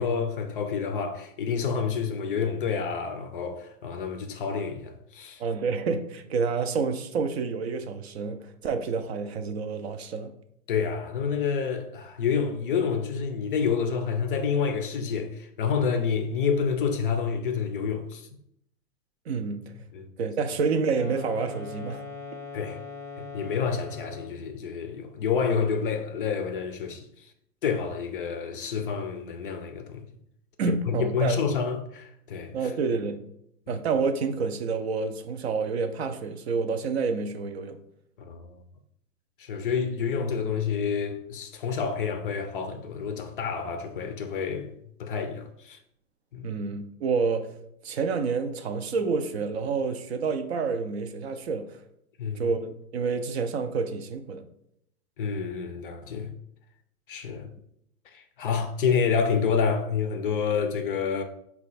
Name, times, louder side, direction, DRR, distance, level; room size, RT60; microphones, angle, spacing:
voice 1, 0.0-5.4 10.7-18.2 19.9-20.1 22.5-22.8 23.2-27.0 27.6-30.0 30.7-32.5 33.7-33.8 38.2-38.5 39.4-44.7 45.0-45.8 46.3-46.6 52.2-52.5 55.2-56.3 57.1-57.5 58.1-61.2, left 6 dB, 40° left, 0.4 m, -28 dB
voice 2, 5.4-10.3 19.3-19.6 20.2-22.0 30.6-31.4 32.5-33.2 33.7-37.8 46.4-47.5 47.8-51.8 52.4-54.4, right 5 dB, 50° right, 0.4 m, -28 dB
sound 1, 20.8-24.5, left 4 dB, ahead, 0.8 m, -41 dB
4.3 x 2.3 x 4.0 m
hypercardioid pair, 125°, 44 cm